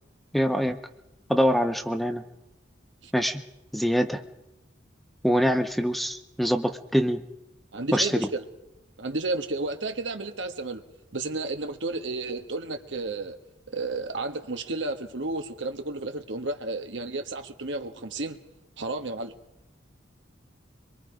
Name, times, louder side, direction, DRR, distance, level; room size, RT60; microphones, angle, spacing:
voice 1, 0.3-0.8 1.3-2.2 3.1-3.4 3.7-4.2 5.2-7.2 7.9-8.3, equal, ahead, 8 dB, 0.8 m, -24 dB
voice 2, 7.7-8.4 9.0-10.8 11.1-13.4 13.7-18.4 18.8-19.3, right 2 dB, 75° right, 6 dB, 1.5 m, -32 dB
23.5 x 23.0 x 5.1 m, 0.93 s
head